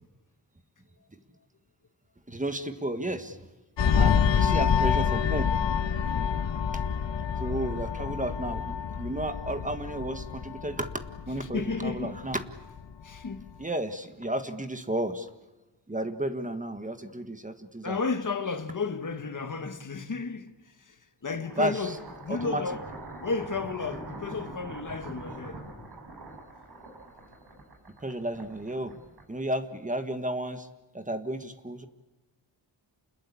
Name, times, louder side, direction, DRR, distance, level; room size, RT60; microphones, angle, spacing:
voice 1, 2.3-3.5 4.0-5.5 7.4-10.9 11.3-12.4 13.6-15.3 15.9-18.0 21.6-22.0 22.3-22.6 28.0-28.9 29.3-30.7 30.9-31.9, right 1 dB, 15° right, 1.6 m, -32 dB
sound 1, 3.8-12.8 13.2-13.4, left 7 dB, 70° left, 1.4 m, -27 dB
voice 2, 6.1-6.5 11.5-12.3 13.0-13.5 17.8-22.8 23.2-25.6, left 4 dB, 45° left, 1.6 m, -33 dB
sound 2, 21.3-29.6, right 2 dB, 55° right, 6.6 m, -44 dB
29.5 x 20.5 x 8.5 m
wide cardioid pair, 150°, 45 cm